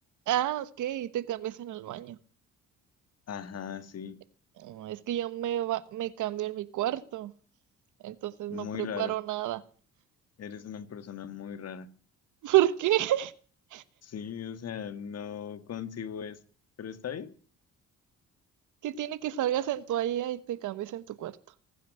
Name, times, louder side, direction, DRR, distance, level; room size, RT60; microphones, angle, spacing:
voice 1, 0.3-2.2 4.6-7.3 8.0-9.6 12.4-13.3 13.7-13.8 18.8-21.3, right 13 dB, 80° right, 1.2 m, -30 dB
voice 2, 3.3-4.2 8.5-9.1 10.4-11.9 14.0-16.4 16.8-17.3, left 8 dB, 55° left, 1.7 m, -38 dB
19.5 x 9.3 x 7.7 m
cardioid pair, 90°, 30 cm